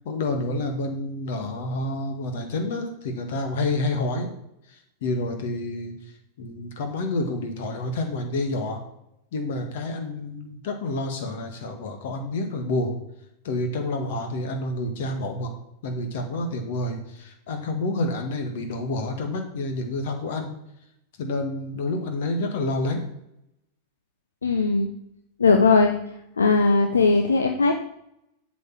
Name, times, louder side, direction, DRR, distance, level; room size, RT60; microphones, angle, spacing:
voice 1, 0.0-4.3 4.7-5.9 6.4-8.8 9.3-12.9 13.4-15.5 15.8-20.5 21.2-23.0, left 2 dB, 65° left, 5 dB, 2.0 m, -28 dB
voice 2, 24.4-24.9 25.4-26.0 26.4-27.7, left 4 dB, 85° left, 5 dB, 0.8 m, -19 dB
8.1 x 5.2 x 7.4 m, 0.80 s
hypercardioid pair, 95°, 0 cm